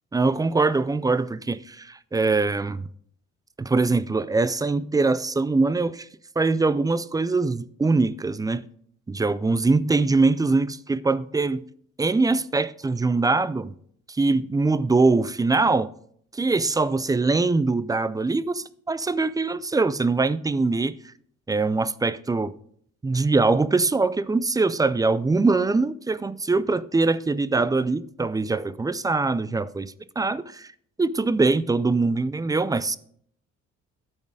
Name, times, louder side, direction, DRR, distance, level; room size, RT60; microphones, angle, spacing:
voice 1, 0.1-2.9 3.6-6.1 6.4-8.7 9.1-11.6 12.0-13.7 14.1-15.9 16.3-21.0 21.5-22.5 23.0-30.7 31.0-33.0, right 3 dB, 15° right, 0.3 m, -23 dB
12.0 x 4.5 x 4.8 m
cardioid pair, 90°, 30 cm